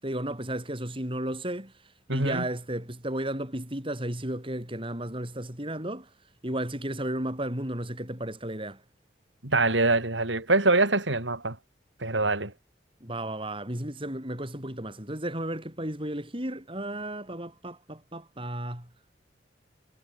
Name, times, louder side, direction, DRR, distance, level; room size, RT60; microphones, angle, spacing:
voice 1, 0.0-6.1 6.4-8.8 13.0-18.9, right 1 dB, 30° right, 8.0 m, -34 dB
voice 2, 2.1-2.5 9.4-11.6 12.0-12.5, right 2 dB, 90° right, 5.0 m, -24 dB
head